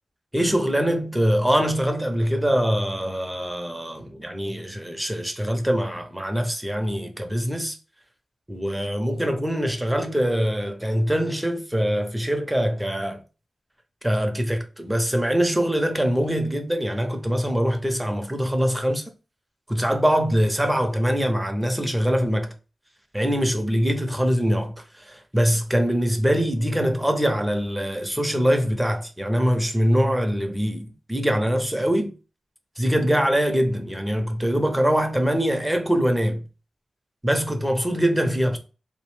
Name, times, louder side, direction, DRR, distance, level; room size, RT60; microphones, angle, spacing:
voice 1, 0.3-7.8 8.5-13.2 14.0-19.0 19.7-22.5 23.1-32.1 32.8-36.4 37.2-38.6, equal, 10° right, 0.7 m, -23 dB
2.6 x 2.1 x 3.1 m
cardioid pair, 45°, 0 cm